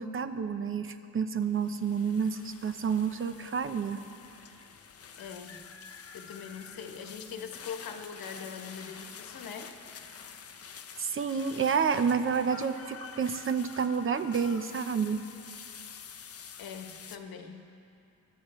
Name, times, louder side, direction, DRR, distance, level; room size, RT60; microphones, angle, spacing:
voice 1, 0.0-4.0 11.0-15.2, right 6 dB, 35° right, 10 dB, 0.7 m, -29 dB
sound 1, 1.4-17.2, left 7 dB, 40° left, 0.7 m, -48 dB
voice 2, 5.1-5.6 6.1-9.7 16.6-17.7, left 6 dB, 70° left, 4 dB, 1.3 m, -42 dB
22.5 x 12.5 x 3.2 m, 2.6 s
cardioid pair, 100°, 37 cm